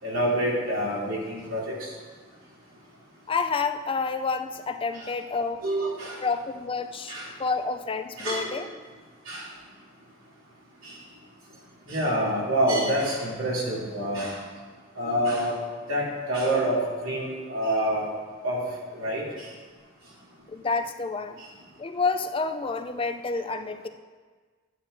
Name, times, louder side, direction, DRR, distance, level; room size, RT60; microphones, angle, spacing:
voice 1, 0.0-1.9 4.9-5.1 5.6-6.2 7.1-7.3 8.2-8.5 9.3-9.5 10.8-11.0 11.9-14.4 15.0-15.5 15.9-18.0 18.4-18.6 18.9-19.5, right 1 dB, 75° right, -6 dB, 3.0 m, -27 dB
voice 2, 3.3-5.6 6.2-8.7 20.5-21.4 21.8-23.9, left 4 dB, 25° left, 8 dB, 0.4 m, -29 dB
11.5 x 9.6 x 2.7 m, 1.5 s
head